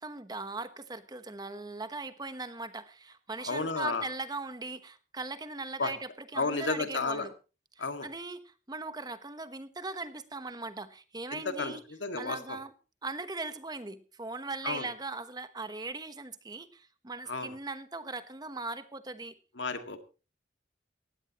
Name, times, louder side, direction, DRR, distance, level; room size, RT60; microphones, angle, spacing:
voice 1, 0.0-7.3 7.8-11.8 12.2-12.7 13.0-19.3, right 3 dB, 20° right, 11 dB, 1.1 m, -39 dB
voice 2, 3.4-4.1 5.8-5.9 6.3-7.3 7.8-8.1 11.3-12.6 14.6-14.9 17.3-17.5 19.6-20.0, left 4 dB, 85° left, 7 dB, 2.1 m, -32 dB
19.0 x 16.0 x 3.0 m, 0.32 s
head